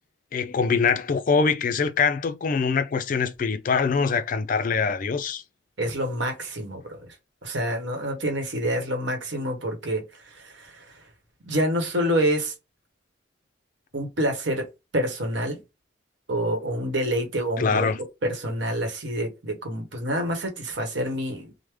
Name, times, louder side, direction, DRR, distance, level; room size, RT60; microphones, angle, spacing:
voice 1, 0.3-5.4 17.6-18.0, left 5 dB, 45° left, 0.3 m, -23 dB
voice 2, 5.8-7.0 7.4-10.0 10.3-10.8 11.4-12.5 13.9-14.7 14.9-15.6 16.3-17.9 18.2-21.5, equal, 70° right, 1.0 m, -27 dB
3.2 x 2.1 x 3.3 m
head